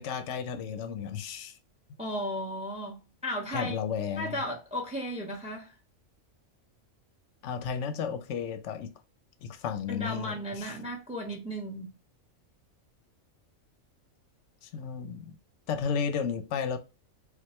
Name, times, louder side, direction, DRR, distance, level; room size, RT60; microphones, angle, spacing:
voice 1, 0.0-1.6 3.5-4.3 7.4-8.9 9.4-10.7 14.6-15.4 15.7-16.8, left 6 dB, 65° left, 0.8 m, -33 dB
voice 2, 2.0-3.8 4.2-5.7 9.9-11.9, equal, 5° right, 0.7 m, -35 dB
4.3 x 2.4 x 3.0 m
omnidirectional pair, 1.4 m